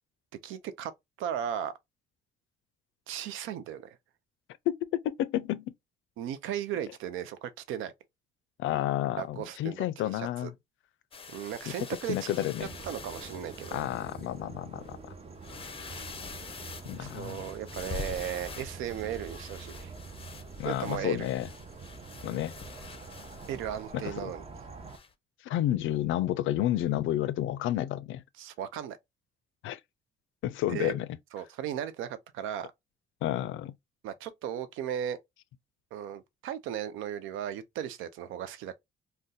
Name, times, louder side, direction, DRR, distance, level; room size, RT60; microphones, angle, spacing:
voice 1, 0.4-0.9 1.2-1.7 3.1-4.0 6.2-7.9 9.2-10.5 11.3-13.8 17.0-19.9 20.6-21.3 23.5-24.4 28.4-29.0 30.7-30.9 31.3-32.7 34.0-35.2 35.9-38.8, right 10 dB, 90° right, 0.4 m, -36 dB
voice 2, 4.7-5.7 8.6-10.5 12.1-12.7 13.7-15.1 16.9-17.4 20.6-21.5 22.2-22.5 23.9-24.3 25.4-28.2 29.6-29.8 30.4-31.1 33.2-33.7, left 13 dB, 80° left, 0.4 m, -30 dB
sound 1, 11.1-14.3 14.8-14.9 15.3-23.9 24.9-25.1, left 5 dB, 30° left, 0.5 m, -45 dB
sound 2, 12.6-25.0, right 4 dB, 30° right, 0.7 m, -46 dB
2.6 x 2.2 x 3.6 m
cardioid pair, 90°, 20 cm